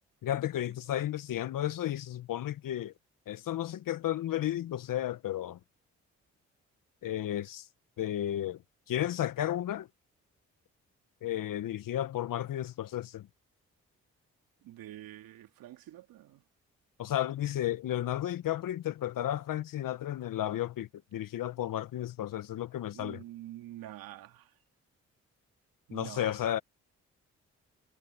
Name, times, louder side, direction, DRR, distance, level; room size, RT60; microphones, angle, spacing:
voice 1, 0.2-2.9 3.3-5.6 7.0-7.7 8.0-8.6 8.9-9.9 11.2-13.3 17.0-23.2 25.9-26.6, left 12 dB, 65° left, 1.3 m, -33 dB
voice 2, 14.6-16.4 22.9-24.5 25.9-26.5, right 14 dB, 75° right, 2.9 m, -46 dB
hypercardioid pair, 45°, 35 cm